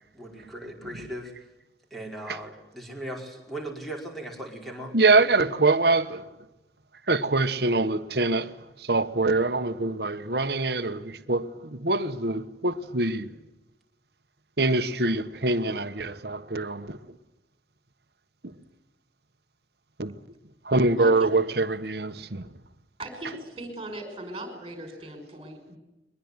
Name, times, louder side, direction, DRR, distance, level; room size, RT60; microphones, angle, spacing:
voice 1, 0.1-1.3 1.9-5.0, right 1 dB, ahead, 5.0 m, -38 dB
voice 2, 4.9-6.3 7.1-13.3 14.6-17.2 18.4-18.6 20.0-20.2 20.6-22.5, right 3 dB, 60° right, 1.3 m, -24 dB
voice 3, 21.0-21.3 23.0-25.8, right 1 dB, 25° right, 5.5 m, -38 dB
22.5 x 21.0 x 9.7 m
head